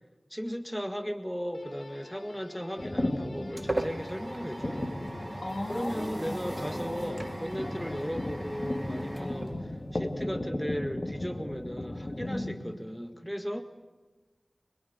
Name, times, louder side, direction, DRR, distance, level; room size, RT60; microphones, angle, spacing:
voice 1, 0.3-5.0 5.7-13.6, equal, 5° left, 6 dB, 1.8 m, -36 dB
sound 1, 1.5-9.9, left 2 dB, 85° left, 3.6 m, -50 dB
sound 2, 2.8-12.5, left 1 dB, 40° left, 2.0 m, -36 dB
sound 3, 2.8-10.2, right 1 dB, 40° right, 1.8 m, -39 dB
voice 2, 5.4-6.4 7.6-8.0 9.2-9.7 12.2-12.6, left 1 dB, 60° left, 4 dB, 3.1 m, -38 dB
25.0 x 22.5 x 9.4 m, 1.3 s
wide cardioid pair, 50°, 0 cm